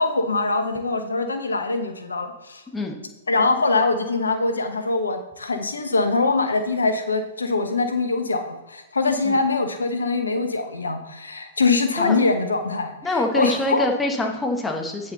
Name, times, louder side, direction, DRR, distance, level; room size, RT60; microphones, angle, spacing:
voice 1, 0.0-2.6 3.3-12.9 13.3-13.9, left 3 dB, 80° left, 7 dB, 1.1 m, -23 dB
voice 2, 13.0-15.1, left 2 dB, 10° left, 1 dB, 1.5 m, -25 dB
9.1 x 6.9 x 4.1 m, 1.0 s
figure-of-eight pair, 110°, 0 cm